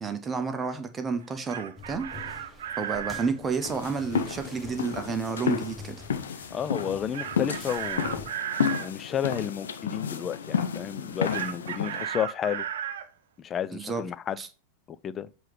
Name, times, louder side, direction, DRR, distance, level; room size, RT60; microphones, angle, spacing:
voice 1, 0.0-2.1 2.8-6.0 13.7-14.0 14.4-14.5, right 5 dB, 20° right, 0.9 m, -30 dB
Chicken rooster, 1.2-3.3 7.1-8.9 11.3-13.1, right 9 dB, 60° right, 0.6 m, -34 dB
sound 1, 1.8-8.3, left 3 dB, ahead, 1.2 m, -46 dB
sound 2, 3.6-12.1, left 7 dB, 65° left, 0.6 m, -31 dB
voice 2, 6.5-8.3 8.8-12.6 13.4-14.4 14.9-15.3, left 8 dB, 25° left, 0.4 m, -32 dB
7.4 x 3.1 x 5.0 m
figure-of-eight pair, 90°, 0 cm